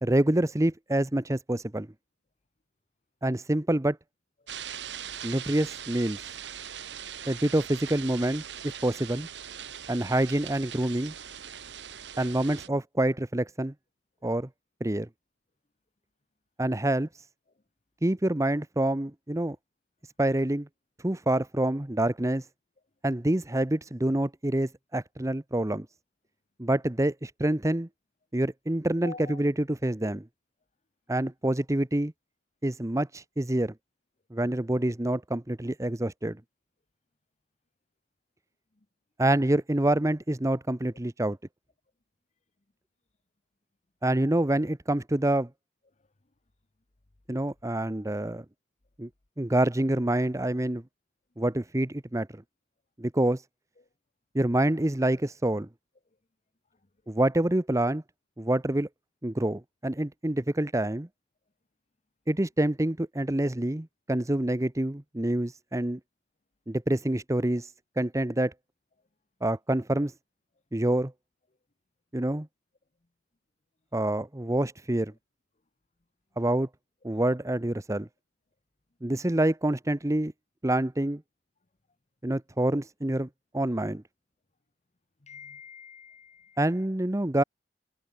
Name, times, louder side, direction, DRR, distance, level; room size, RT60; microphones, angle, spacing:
voice 1, 0.0-1.9 3.2-4.0 5.2-6.2 7.3-9.3 9.9-11.1 12.2-13.7 14.2-14.5 14.8-15.1 16.6-17.1 18.0-19.6 20.2-20.7 21.0-22.4 23.0-25.9 26.6-27.9 28.3-30.3 31.1-32.1 32.6-33.7 34.3-36.4 39.2-41.4 44.0-45.5 47.3-48.4 49.0-49.1 49.4-50.8 51.4-52.4 53.0-53.4 54.3-55.7 57.1-58.0 58.4-58.9 59.2-61.1 62.3-66.0 66.7-67.7 68.0-68.5 69.4-70.1 70.7-71.1 72.1-72.5 73.9-75.1 76.4-76.7 77.0-78.1 79.0-80.3 80.6-81.2 82.2-83.3 83.5-84.0 86.6-87.4, right 1 dB, 15° right, 0.8 m, -27 dB
sound 1, 4.5-12.7, right 9 dB, 80° right, 1.8 m, -41 dB
voice 2, 29.0-29.5 53.8-53.9 85.2-86.8, left 5 dB, 40° left, 1.0 m, -45 dB
head